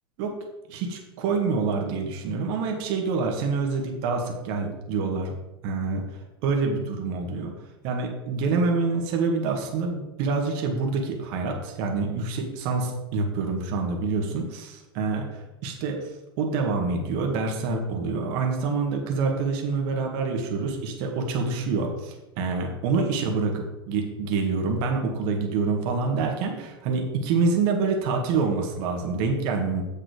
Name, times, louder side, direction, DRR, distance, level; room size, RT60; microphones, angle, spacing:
voice 1, 0.7-5.3 5.6-6.0 6.4-7.5 7.8-16.0 16.4-29.8, right 4 dB, 55° right, 2 dB, 1.9 m, -26 dB
7.5 x 7.0 x 5.2 m, 1.0 s
hypercardioid pair, 100°, 13 cm